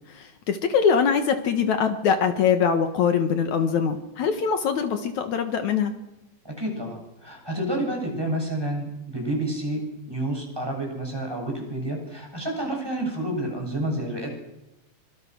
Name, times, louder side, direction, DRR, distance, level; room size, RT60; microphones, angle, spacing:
voice 1, 0.1-5.9, left 6 dB, 70° left, 7 dB, 2.8 m, -23 dB
voice 2, 6.4-9.8 10.1-14.3, right 1 dB, 5° right, 1 dB, 7.6 m, -29 dB
27.5 x 25.5 x 6.3 m, 0.91 s
omnidirectional pair, 3.5 m